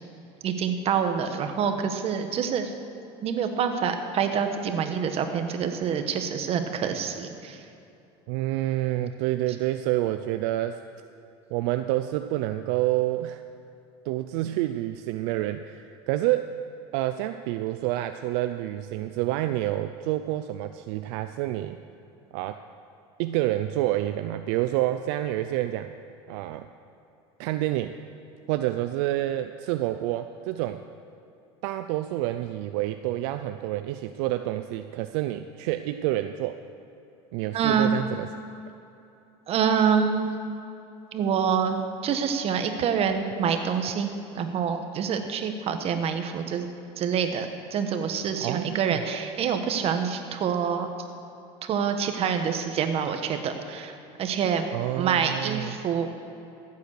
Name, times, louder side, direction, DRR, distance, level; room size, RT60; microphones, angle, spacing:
voice 1, 0.4-2.7 3.2-7.6 37.5-37.9 39.5-40.3 41.1-46.7 47.0-50.9 51.6-54.7 55.0-56.1, right 7 dB, 45° right, 7 dB, 1.4 m, -26 dB
voice 2, 8.3-10.8 11.5-13.4 14.1-16.6 16.9-21.8 22.3-22.6 23.2-25.9 26.3-26.7 27.4-27.9 28.5-30.8 31.6-36.6 37.3-38.3 48.4-49.0 54.7-55.8, right 14 dB, 75° right, 9 dB, 0.5 m, -28 dB
14.5 x 8.4 x 6.6 m, 2.8 s
supercardioid pair, 105°, 14 cm